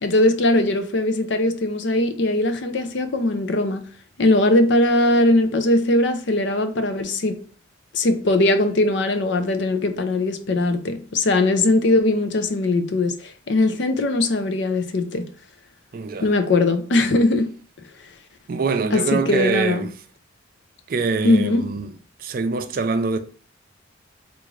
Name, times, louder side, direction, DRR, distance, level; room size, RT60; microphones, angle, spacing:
voice 1, 0.0-3.9 4.2-7.4 7.9-15.3 16.2-17.5 18.9-19.9 21.2-21.7, left 2 dB, 65° left, 0.5 m, -20 dB
voice 2, 15.9-16.3 18.5-19.9 20.9-21.9 22.2-23.2, right 4 dB, 45° right, 0.4 m, -24 dB
3.6 x 2.5 x 3.1 m
head